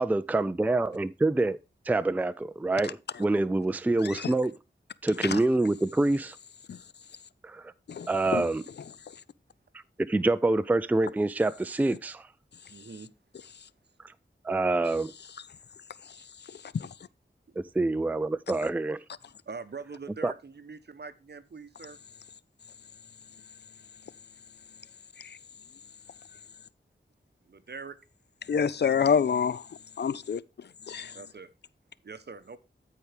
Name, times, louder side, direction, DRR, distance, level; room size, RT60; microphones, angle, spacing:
voice 1, 0.0-1.6 1.9-4.5 5.0-6.4 7.4-7.7 8.1-8.6 10.0-12.2 14.4-15.1 17.6-19.0 20.2-20.3, right 2 dB, 10° right, 0.3 m, -26 dB
voice 2, 4.0-4.3 5.2-5.4 6.7-6.8 7.9-8.5 9.1-9.2 16.0-16.2 16.4-16.9 25.2-25.4 28.5-31.2, left 6 dB, 60° left, 0.4 m, -29 dB
voice 3, 12.7-13.1 16.2-16.3 19.5-22.0 27.5-28.0 31.1-31.5 32.0-32.6, right 4 dB, 60° right, 0.9 m, -43 dB
13.5 x 4.6 x 3.3 m
wide cardioid pair, 75°, 19 cm